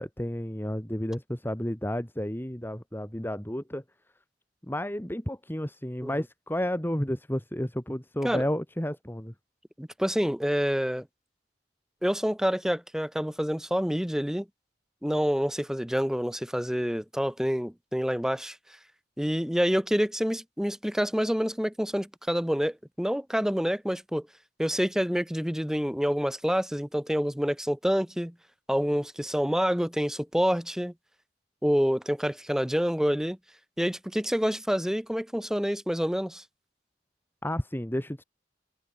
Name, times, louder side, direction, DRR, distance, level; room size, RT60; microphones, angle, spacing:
voice 1, 0.0-3.8 4.6-9.3 37.4-38.2, equal, 10° left, 2.7 m, -31 dB
voice 2, 9.8-11.1 12.0-14.5 15.0-18.6 19.2-24.3 24.6-28.3 28.7-30.9 31.6-33.4 33.8-36.4, equal, 5° right, 1.1 m, -27 dB
head